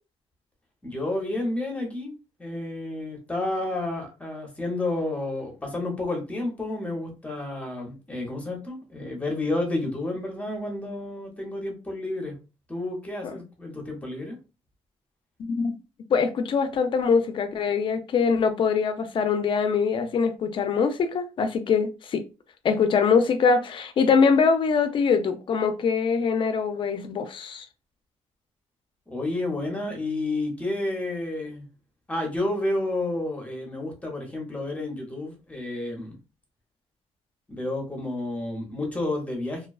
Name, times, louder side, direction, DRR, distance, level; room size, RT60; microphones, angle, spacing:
voice 1, 0.8-2.1 2.4-12.4 12.7-14.4 29.1-31.7 32.1-36.2 37.5-39.7, left 2 dB, 10° left, 0.8 m, -30 dB
voice 2, 15.4-15.8 16.1-22.2 22.6-27.7, left 5 dB, 45° left, 0.4 m, -23 dB
2.3 x 2.3 x 2.3 m
cardioid pair, 135°, 12 cm